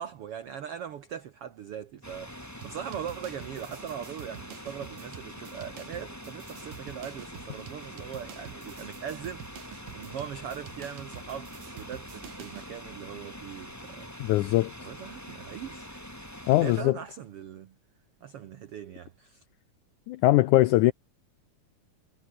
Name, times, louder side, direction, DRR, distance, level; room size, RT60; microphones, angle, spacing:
voice 1, 0.0-14.3 14.8-17.8 18.2-19.4, right 8 dB, 85° right, 1.2 m, -40 dB
sound 1, 2.0-16.8, equal, 5° left, 7.2 m, -44 dB
sound 2, 2.6-12.7, right 9 dB, 70° right, 3.8 m, -48 dB
voice 2, 14.2-14.7 16.5-17.0 20.1-20.9, left 17 dB, 90° left, 1.7 m, -21 dB
omnidirectional pair, 4.3 m